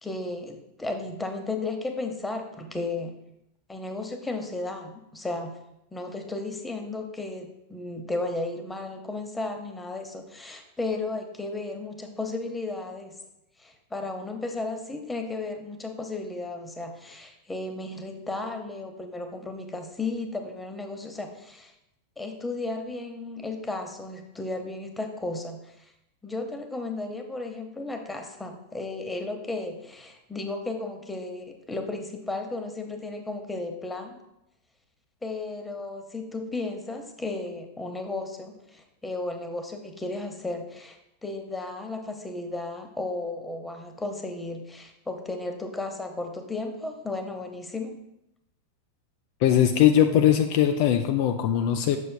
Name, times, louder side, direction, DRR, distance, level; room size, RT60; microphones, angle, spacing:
voice 1, 0.0-3.1 3.7-5.6 5.9-13.2 13.6-21.7 22.2-25.9 26.2-34.2 35.2-48.0, left 2 dB, 10° left, 5 dB, 0.7 m, -34 dB
voice 2, 49.4-52.0, left 10 dB, 45° left, 6 dB, 0.4 m, -20 dB
6.7 x 6.4 x 2.2 m, 0.86 s
figure-of-eight pair, 90°, 0 cm